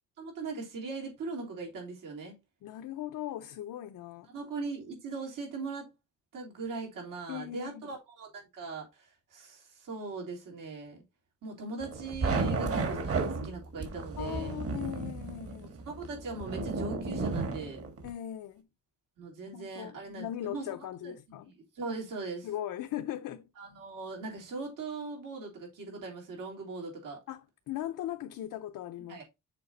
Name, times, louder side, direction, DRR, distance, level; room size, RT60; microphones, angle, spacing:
voice 1, 0.2-2.4 4.3-5.9 6.3-11.0 11.4-13.1 13.4-14.6 15.5-17.8 19.2-20.7 21.0-22.5 23.6-27.2 29.1-29.2, right 3 dB, 85° right, 3.5 m, -40 dB
voice 2, 2.6-4.3 7.3-7.9 12.5-12.9 14.2-15.7 18.0-18.7 19.5-21.5 22.4-23.5 27.3-29.2, left 12 dB, 80° left, 0.6 m, -39 dB
sound 1, 11.8-18.1, right 4 dB, 45° right, 1.5 m, -33 dB
6.8 x 4.7 x 3.9 m
wide cardioid pair, 145°, 32 cm